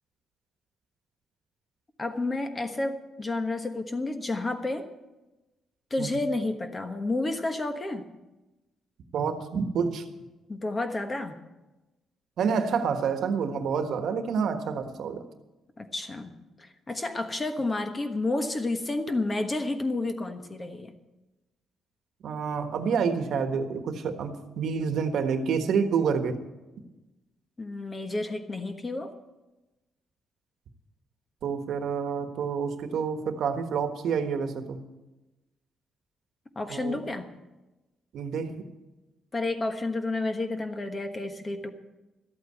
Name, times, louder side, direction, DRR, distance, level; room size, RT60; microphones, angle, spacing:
voice 1, 2.0-4.9 5.9-8.0 10.5-11.4 15.8-16.3 16.6-20.9 27.6-29.1 36.5-37.3 39.3-41.7, left 2 dB, 20° left, 7 dB, 1.2 m, -30 dB
voice 2, 9.1-10.0 12.4-15.2 22.2-26.4 31.4-34.8 36.7-37.0 38.1-38.5, right 6 dB, 65° right, 8 dB, 1.4 m, -28 dB
13.0 x 8.5 x 8.3 m, 1.0 s
cardioid pair, 125°, 0 cm